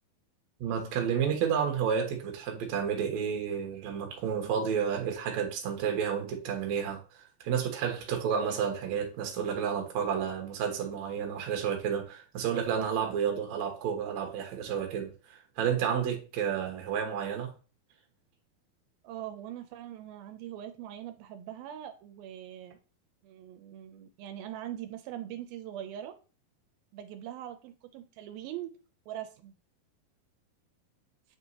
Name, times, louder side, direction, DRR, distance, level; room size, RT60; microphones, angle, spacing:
voice 1, 0.6-17.5, right 7 dB, 60° right, 2.2 m, -31 dB
voice 2, 19.0-22.8 23.2-26.1 26.9-28.7 29.1-29.5, right 11 dB, 85° right, 2.4 m, -42 dB
7.9 x 4.5 x 2.8 m
omnidirectional pair, 4.2 m